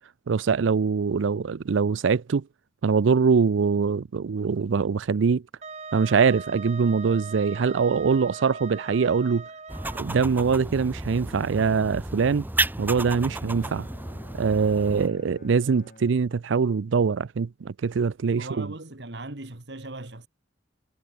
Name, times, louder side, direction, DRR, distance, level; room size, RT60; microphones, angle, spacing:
voice 1, 0.3-2.4 2.8-5.4 5.9-9.4 10.0-12.5 12.8-13.9 14.4-18.7, right 5 dB, 90° right, 0.5 m, -23 dB
Wind instrument woodwind instrument, 5.6-10.3, right 4 dB, 35° right, 3.0 m, -40 dB
sound 1, 9.7-15.1, right 2 dB, 10° right, 0.9 m, -32 dB
Bowed string instrument, 12.9-17.0, left 2 dB, 50° left, 1.6 m, -50 dB
voice 2, 18.4-20.3, right 2 dB, 65° right, 2.0 m, -38 dB
head